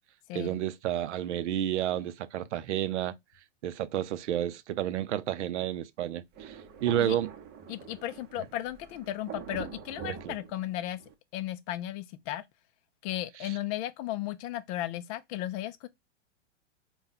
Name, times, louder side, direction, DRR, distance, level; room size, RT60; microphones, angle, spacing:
voice 1, 0.3-3.1 3.6-7.3 10.0-10.3 13.4-13.6, right 11 dB, 70° right, 0.6 m, -31 dB
Thunder, 6.3-11.1, right 7 dB, 25° right, 0.7 m, -45 dB
voice 2, 7.7-11.0 11.3-12.4 13.0-15.9, left 13 dB, 30° left, 0.4 m, -35 dB
4.0 x 2.3 x 3.8 m
hypercardioid pair, 115°, 37 cm